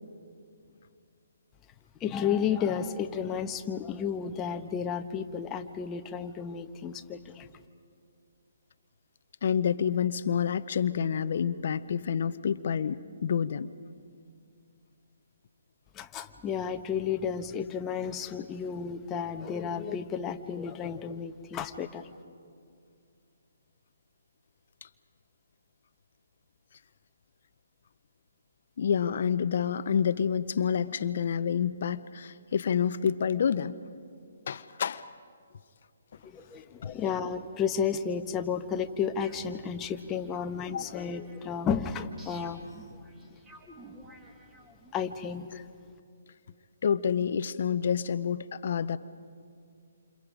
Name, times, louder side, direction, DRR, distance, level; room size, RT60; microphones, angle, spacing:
voice 1, 2.0-7.5 15.9-22.1 36.2-42.6 44.9-45.6, left 7 dB, 20° left, 7 dB, 1.0 m, -32 dB
voice 2, 9.4-13.7 28.8-33.8 34.5-35.0 36.8-37.0 40.7-40.8 46.8-49.0, left 7 dB, 55° left, 13 dB, 0.7 m, -28 dB
sound 1, 39.2-45.0, right 1 dB, 10° right, 2.5 m, -52 dB
28.5 x 28.0 x 5.0 m, 2.3 s
figure-of-eight pair, 140°, 0 cm